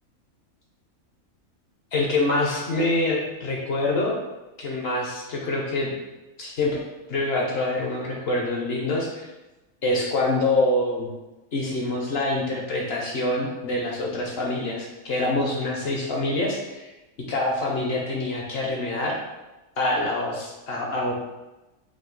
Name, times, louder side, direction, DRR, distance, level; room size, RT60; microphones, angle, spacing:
voice 1, 1.9-4.1 4.6-5.9 6.4-6.8 7.1-9.3 9.8-11.1 11.5-16.6 17.3-19.2 19.8-21.1, left 2 dB, 55° left, -1 dB, 0.7 m, -25 dB
5.0 x 2.2 x 3.8 m, 1.1 s
omnidirectional pair, 1.5 m